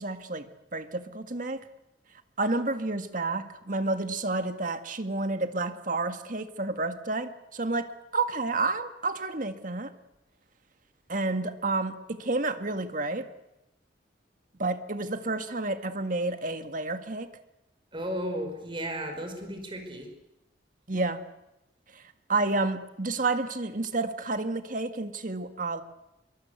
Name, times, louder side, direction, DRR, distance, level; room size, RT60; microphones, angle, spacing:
voice 1, 0.0-1.6 2.4-9.9 11.1-13.3 14.6-17.3 20.9-21.2 22.3-25.8, right 3 dB, 45° right, 8 dB, 1.8 m, -30 dB
voice 2, 17.9-20.1, equal, 25° right, 5 dB, 5.3 m, -34 dB
25.0 x 23.5 x 8.3 m, 0.92 s
head